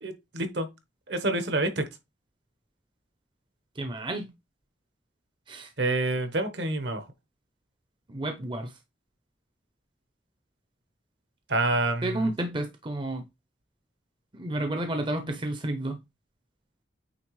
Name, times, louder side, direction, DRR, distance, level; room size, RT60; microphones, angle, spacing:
voice 1, 0.0-0.7 1.1-1.8 5.8-7.1 11.5-12.3, right 2 dB, 65° right, 1.2 m, -27 dB
voice 2, 3.8-4.3 5.5-5.7 8.1-8.7 12.0-13.2 14.3-16.0, right 1 dB, 25° right, 0.7 m, -31 dB
8.7 x 3.4 x 3.2 m
head